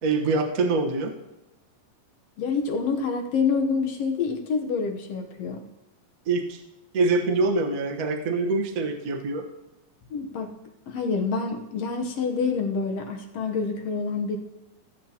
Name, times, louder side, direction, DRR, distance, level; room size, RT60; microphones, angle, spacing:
voice 1, 0.0-1.1 6.3-6.6 6.9-9.5, right 3 dB, 85° right, 1 dB, 0.7 m, -24 dB
voice 2, 2.4-5.6 10.1-10.5 10.9-14.4, left 5 dB, 65° left, 3 dB, 1.8 m, -27 dB
18.0 x 7.9 x 2.9 m, 0.98 s
omnidirectional pair, 3.5 m